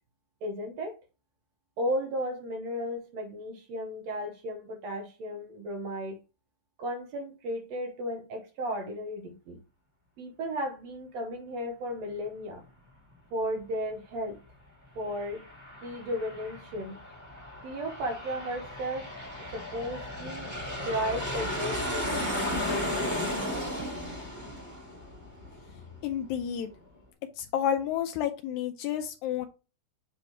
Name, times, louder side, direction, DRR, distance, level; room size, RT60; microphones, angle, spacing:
voice 1, 0.4-1.0 1.8-6.2 6.8-9.6 10.2-12.6 13.3-14.4 15.0-15.4 15.8-17.0 17.6-19.1 19.5-20.6 20.8-22.5, equal, 70° right, 1.9 m, -34 dB
Aircraft, 14.9-26.1, left 1 dB, 10° right, 1.2 m, -35 dB
voice 2, 26.0-26.7 27.4-29.5, left 9 dB, 80° left, 1.9 m, -30 dB
7.8 x 3.0 x 4.4 m
omnidirectional pair, 3.4 m